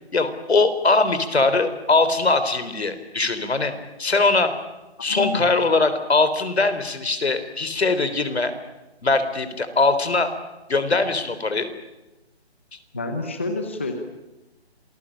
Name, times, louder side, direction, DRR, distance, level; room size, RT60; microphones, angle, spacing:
voice 1, 0.1-3.7 4.0-4.5 5.0-8.5 9.0-10.3 10.7-11.7, left 3 dB, 70° left, 10 dB, 3.8 m, -21 dB
voice 2, 5.1-5.4 12.9-13.9, left 3 dB, 10° left, 6 dB, 0.8 m, -28 dB
27.5 x 20.0 x 8.7 m, 1.0 s
hypercardioid pair, 175°, 33 cm